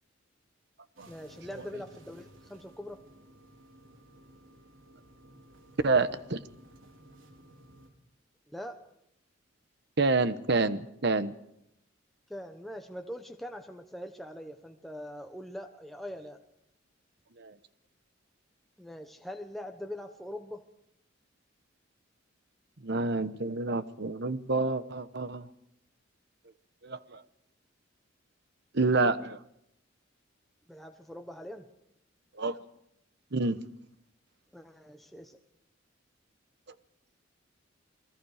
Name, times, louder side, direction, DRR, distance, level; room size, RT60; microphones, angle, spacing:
sound 1, 1.0-7.9, right 1 dB, 90° right, 4.0 m, -55 dB
voice 1, 1.1-3.0 8.5-8.9 12.3-16.4 18.8-20.6 30.7-31.7 34.5-35.4, left 1 dB, ahead, 4 dB, 1.0 m, -42 dB
voice 2, 5.8-6.4 10.0-11.3 17.4-17.5 22.8-25.5 26.8-27.2 28.7-29.4 32.4-32.6 33.3-33.6, right 3 dB, 60° right, 12 dB, 1.1 m, -28 dB
29.5 x 20.5 x 5.0 m, 0.77 s
head